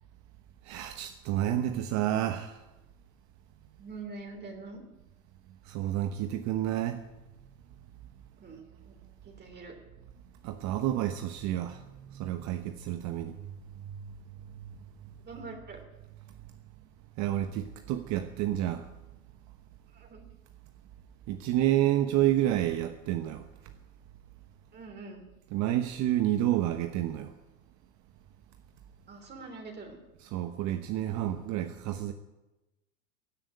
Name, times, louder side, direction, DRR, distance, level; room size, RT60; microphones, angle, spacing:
voice 1, 0.6-2.6 5.6-7.0 10.4-11.8 12.1-13.4 17.2-18.9 21.3-23.4 25.5-27.3 30.2-32.1, right 13 dB, 40° right, 7 dB, 1.2 m, -29 dB
voice 2, 3.8-4.8 8.4-9.0 9.2-9.7 15.2-15.8 19.9-20.2 24.7-25.2 29.1-30.0, right 3 dB, 25° right, 3 dB, 3.1 m, -44 dB
16.5 x 9.1 x 9.5 m, 1.0 s
hypercardioid pair, 110°, 42 cm